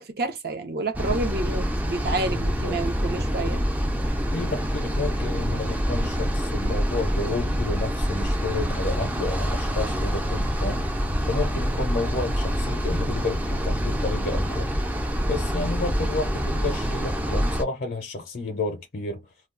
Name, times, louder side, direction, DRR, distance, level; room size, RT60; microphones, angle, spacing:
voice 1, 0.0-3.6, right 2 dB, 55° right, 0.7 m, -29 dB
sound 1, 0.9-17.6, equal, 10° right, 0.4 m, -26 dB
voice 2, 2.4-2.8 3.5-3.6 4.3-10.9 11.3-14.7 15.3-19.3, left 3 dB, 50° left, 0.5 m, -31 dB
2.3 x 2.2 x 3.6 m
head